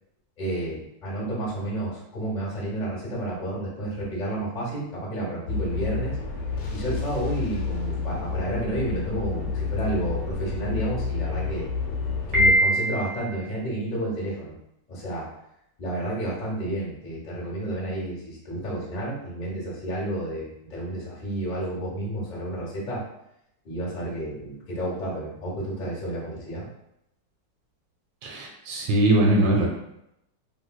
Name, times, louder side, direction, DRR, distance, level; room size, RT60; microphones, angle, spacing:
voice 1, 0.4-6.2 6.7-11.7 12.3-14.6 14.9-15.3 15.8-23.0 23.6-26.7, right 1 dB, 35° left, -6 dB, 0.8 m, -31 dB
sound 1, 5.5-12.6, left 5 dB, 75° left, 1.3 m, -30 dB
Piano, 12.3-13.4, equal, 50° right, 1.1 m, -21 dB
voice 2, 28.2-29.7, right 1 dB, 90° right, 0 dB, 1.3 m, -21 dB
3.1 x 3.0 x 2.2 m, 0.81 s
omnidirectional pair, 1.9 m